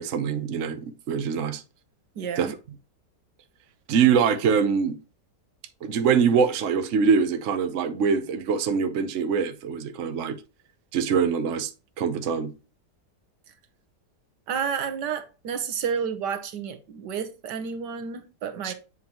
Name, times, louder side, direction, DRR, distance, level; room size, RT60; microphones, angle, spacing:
voice 1, 0.0-1.6 2.4-2.5 3.9-5.0 5.8-10.4 10.9-11.7 12.0-12.5 18.6-18.7, right 6 dB, 55° right, 1.0 m, -23 dB
voice 2, 2.2-2.5 14.5-18.7, right 7 dB, 80° right, 1.6 m, -30 dB
7.8 x 5.5 x 3.0 m
omnidirectional pair, 1.8 m